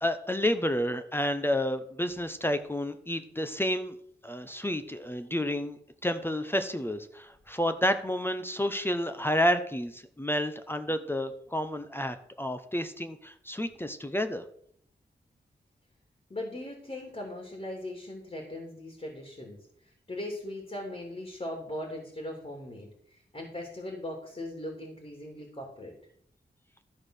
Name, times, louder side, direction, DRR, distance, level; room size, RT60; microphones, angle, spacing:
voice 1, 0.0-4.0 4.2-14.4, left 1 dB, 10° left, 8 dB, 0.9 m, -30 dB
voice 2, 16.3-25.9, left 1 dB, 35° left, 1 dB, 3.1 m, -39 dB
13.0 x 4.8 x 6.5 m, 0.65 s
wide cardioid pair, 75°, 18 cm